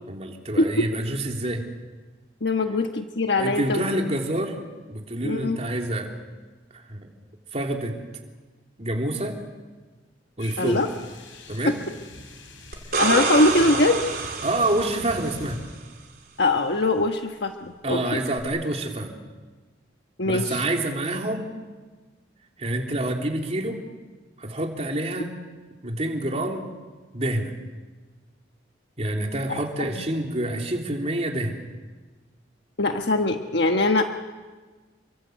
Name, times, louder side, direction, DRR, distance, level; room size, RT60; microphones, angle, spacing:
voice 1, 0.1-1.7 3.4-4.6 4.9-6.1 6.9-7.1 7.5-8.0 8.8-9.4 10.4-10.9 11.5-11.8 14.4-15.6 17.8-19.2 20.2-21.5 22.6-23.8 24.4-25.4 25.8-26.7 27.1-27.6 29.0-31.6, right 1 dB, 35° right, 1 dB, 3.5 m, -27 dB
voice 2, 2.4-3.8 5.2-5.6 10.6-10.9 13.0-14.0 16.4-18.2 20.2-20.6 29.5-29.6 32.8-34.0, left 2 dB, 65° left, 4 dB, 1.3 m, -22 dB
sound 1, 10.4-15.6, left 1 dB, 90° left, 6.4 m, -42 dB
sound 2, 12.7-15.5 18.4-18.5, right 4 dB, 50° right, 4.0 m, -27 dB
29.5 x 24.5 x 8.2 m, 1.3 s
head